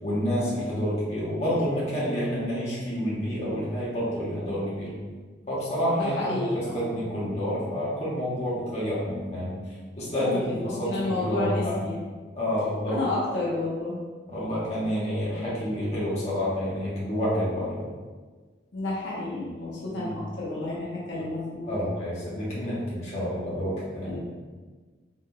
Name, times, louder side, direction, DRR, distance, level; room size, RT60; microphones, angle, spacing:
voice 1, 0.0-4.9 5.5-9.6 10.0-11.8 12.4-13.0 14.3-17.9 19.9-20.2 21.6-24.2, equal, 35° left, -8 dB, 1.1 m, -29 dB
voice 2, 5.9-6.9 10.2-12.0 12.9-14.0 18.7-21.9 24.0-24.2, left 2 dB, 85° left, -7 dB, 1.0 m, -31 dB
3.8 x 3.8 x 2.2 m, 1.4 s
head